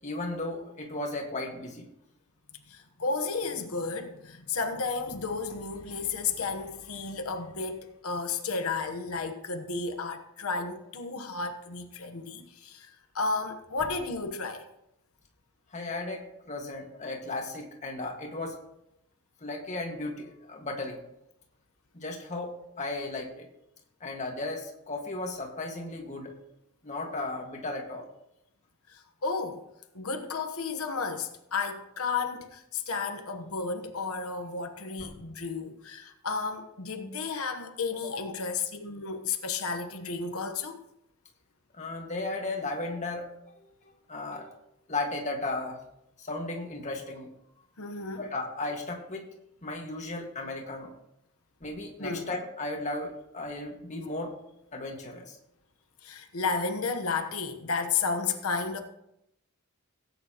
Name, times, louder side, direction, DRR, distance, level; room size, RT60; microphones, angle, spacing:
voice 1, 0.0-1.9 13.8-13.9 15.7-18.6 19.4-21.0 21.9-23.5 24.0-26.3 26.8-28.1 35.0-35.1 41.7-43.3 43.6-44.5 44.9-45.8 46.2-47.3 48.2-49.2 49.6-50.9 51.6-54.3 54.7-55.4, left 2 dB, 35° left, 1 dB, 1.8 m, -35 dB
voice 2, 2.7-14.6 28.9-29.6 29.9-40.8 47.8-48.2 52.0-52.3 56.0-58.8, left 4 dB, 80° left, 5 dB, 1.1 m, -33 dB
17.5 x 9.1 x 3.0 m, 0.82 s
head